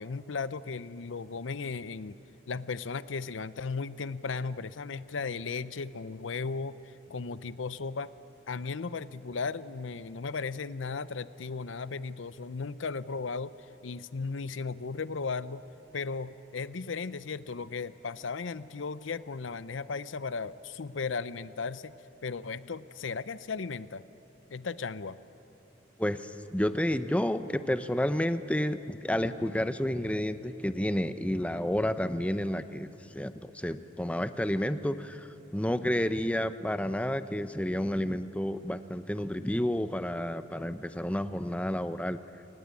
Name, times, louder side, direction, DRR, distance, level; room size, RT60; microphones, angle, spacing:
voice 1, 0.0-2.2 2.5-8.1 8.5-13.5 13.8-15.6 15.9-21.9 22.2-24.0 24.5-25.2, left 4 dB, 80° left, 15 dB, 0.6 m, -36 dB
voice 2, 26.0-42.2, left 1 dB, 5° left, 11 dB, 0.7 m, -30 dB
28.5 x 19.5 x 8.4 m, 3.0 s
head